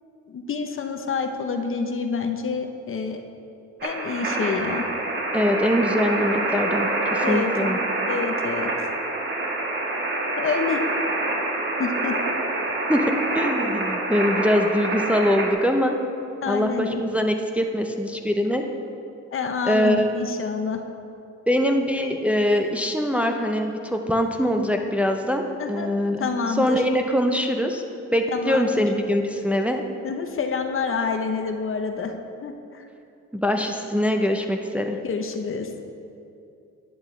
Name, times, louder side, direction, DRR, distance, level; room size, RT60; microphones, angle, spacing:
voice 1, 0.3-3.2 3.8-4.9 7.2-7.8 8.1-8.9 10.4-10.8 11.8-12.2 16.4-17.0 19.3-20.8 25.6-25.9 26.2-26.8 28.3-28.7 30.0-32.1 32.4-32.8 35.0-35.7, left 5 dB, 45° left, 6 dB, 0.8 m, -27 dB
sound 1, 3.8-15.5, right 2 dB, 40° right, 1.5 m, -26 dB
voice 2, 5.3-7.8 12.9-16.0 16.5-18.6 19.6-20.1 21.5-27.8 28.1-29.8 33.3-35.0, equal, 5° right, 3 dB, 0.6 m, -23 dB
11.0 x 8.9 x 3.2 m, 2.6 s
cardioid pair, 90°, 30 cm